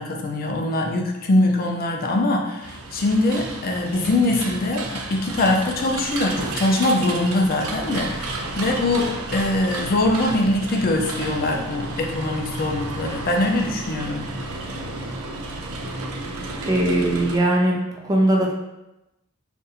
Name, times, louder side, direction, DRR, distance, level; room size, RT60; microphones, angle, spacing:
voice 1, 0.0-14.3, left 2 dB, 40° left, 2 dB, 0.4 m, -22 dB
sound 1, 2.6-17.4, right 2 dB, 70° right, 0.4 m, -32 dB
voice 2, 16.7-18.5, right 1 dB, 15° right, -1 dB, 0.4 m, -20 dB
2.6 x 2.5 x 4.0 m, 0.94 s
head